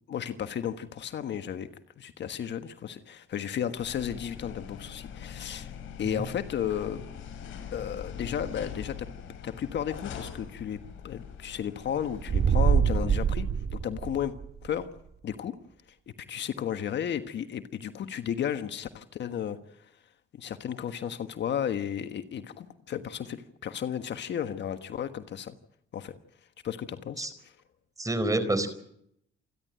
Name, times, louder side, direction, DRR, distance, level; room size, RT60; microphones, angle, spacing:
voice 1, 0.0-1.7 2.0-5.7 6.0-7.0 7.7-9.1 9.4-10.8 11.0-14.3 14.6-14.9 15.2-15.5 16.1-19.9 20.3-25.5 25.9-26.1 26.6-27.5, left 9 dB, 65° left, 9 dB, 1.4 m, -34 dB
sound 1, 3.8-12.4, left 7 dB, 85° left, 5.7 m, -42 dB
sound 2, 12.1-14.6, right 7 dB, 55° right, 2.2 m, -25 dB
voice 2, 28.0-28.7, right 2 dB, 15° right, 12 dB, 4.2 m, -28 dB
28.0 x 11.5 x 9.1 m, 0.73 s
cardioid pair, 90°, 20 cm